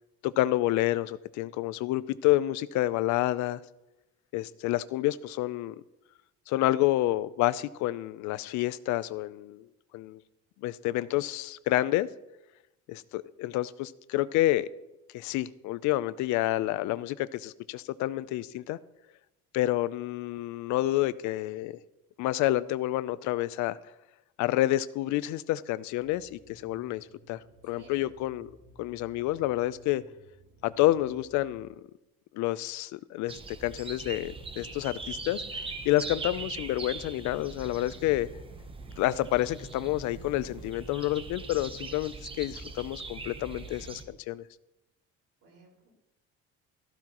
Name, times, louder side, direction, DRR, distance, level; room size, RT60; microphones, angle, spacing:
voice 1, 0.2-3.6 4.3-5.8 6.5-9.7 9.9-10.2 10.6-12.1 12.9-14.7 15.1-18.8 19.5-21.8 22.2-23.8 24.4-28.5 28.8-30.0 30.6-31.7 32.3-38.3 39.0-44.4, left 15 dB, 75° left, 17 dB, 0.5 m, -29 dB
sound 1, 26.0-31.7, right 1 dB, 85° right, 3.5 m, -57 dB
voice 2, 27.6-28.0 45.4-46.0, right 4 dB, 70° right, -3 dB, 4.9 m, -54 dB
sound 2, 33.3-44.0, right 3 dB, 20° right, 0.9 m, -41 dB
14.5 x 13.0 x 3.0 m, 0.95 s
cardioid pair, 155°, 29 cm